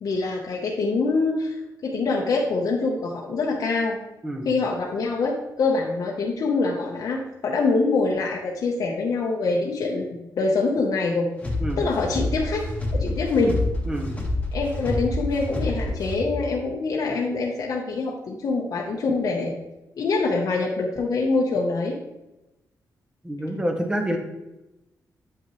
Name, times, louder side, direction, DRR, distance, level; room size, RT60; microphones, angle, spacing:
voice 1, 0.0-1.6 1.8-4.0 4.4-11.3 11.8-12.6 12.9-13.5 14.5-19.5 20.0-22.0, left 3 dB, 60° left, -2 dB, 0.8 m, -24 dB
sound 1, 11.4-16.5, left 2 dB, 15° left, 1.2 m, -28 dB
voice 2, 23.2-24.2, equal, 10° right, 3 dB, 0.9 m, -27 dB
8.0 x 5.6 x 3.0 m, 0.99 s
wide cardioid pair, 145°, 7 cm